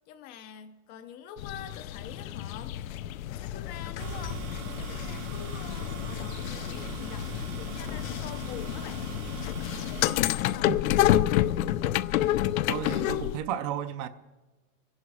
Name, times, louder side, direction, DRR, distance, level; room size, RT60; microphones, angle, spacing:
voice 1, 0.1-2.8 3.3-9.1 9.9-10.8, left 8 dB, 25° left, 0.5 m, -45 dB
sound 1, 1.4-13.4, left 13 dB, 90° left, 0.7 m, -29 dB
sound 2, 4.0-10.2, right 9 dB, 85° right, 2.3 m, -41 dB
voice 2, 10.7-11.1 12.7-14.1, right 10 dB, 30° right, 0.5 m, -33 dB
24.5 x 11.0 x 4.7 m
supercardioid pair, 165°, 40 cm